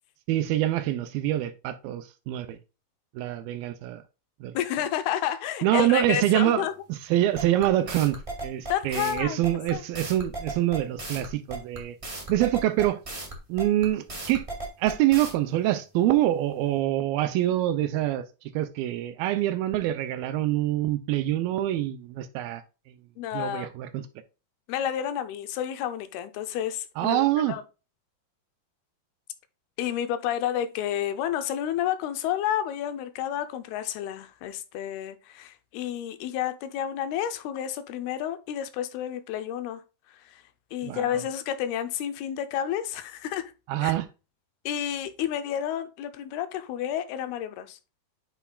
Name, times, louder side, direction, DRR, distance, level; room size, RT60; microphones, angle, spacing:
voice 1, 0.3-2.6 3.2-4.0 4.4-4.6 5.6-12.0 12.3-13.2 13.5-14.5 14.8-18.3 18.5-22.6 23.3-24.1 27.0-27.6 40.8-41.2 43.7-44.1, right 13 dB, 80° right, 2.3 m, -25 dB
voice 2, 4.5-6.7 8.7-9.4 9.7-9.8 23.2-23.7 24.7-27.6 29.8-39.8 40.3-40.4 40.7-43.5 43.8-43.9 44.7-47.8, left 10 dB, 85° left, 2.7 m, -30 dB
sound 1, 7.3-15.3, right 2 dB, 40° right, 0.4 m, -36 dB
9.2 x 5.5 x 2.3 m
omnidirectional pair, 4.5 m